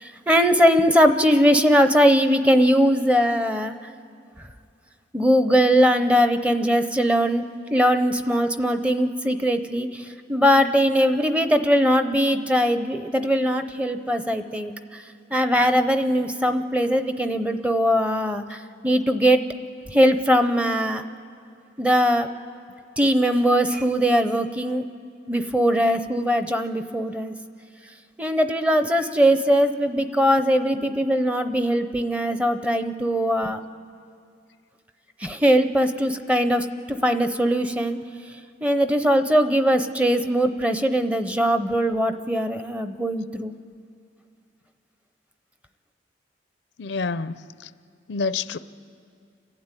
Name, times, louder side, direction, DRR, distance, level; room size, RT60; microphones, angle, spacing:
voice 1, 0.0-3.7 5.1-7.4 7.7-14.7 15.3-19.4 19.9-21.0 21.8-22.3 23.0-24.8 25.3-27.3 28.2-33.6 35.2-38.0 38.6-43.5, equal, 10° right, 9 dB, 0.7 m, -20 dB
voice 2, 46.8-47.7 48.1-48.6, left 4 dB, 80° left, 14 dB, 0.5 m, -28 dB
30.0 x 12.0 x 9.0 m, 2.3 s
head